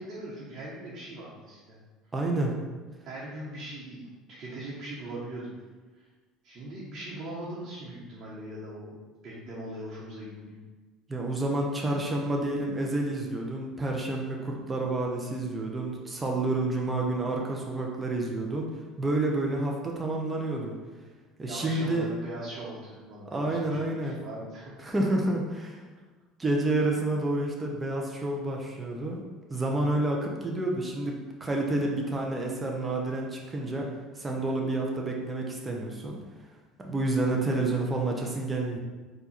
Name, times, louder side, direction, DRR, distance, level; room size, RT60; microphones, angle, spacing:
voice 1, 0.0-1.8 3.0-5.5 6.0-6.1 6.4-8.9 9.2-10.6 20.9-21.0 21.4-24.7, right 1 dB, 50° right, -7 dB, 1.2 m, -40 dB
voice 2, 2.1-2.6 11.1-18.7 19.0-20.8 21.4-22.1 23.3-24.2 24.8-25.8 26.4-29.2 29.5-33.9 34.1-36.2 36.8-38.8, right 2 dB, 20° right, -1 dB, 0.8 m, -29 dB
4.5 x 2.6 x 4.3 m, 1.3 s
hypercardioid pair, 75°, 0 cm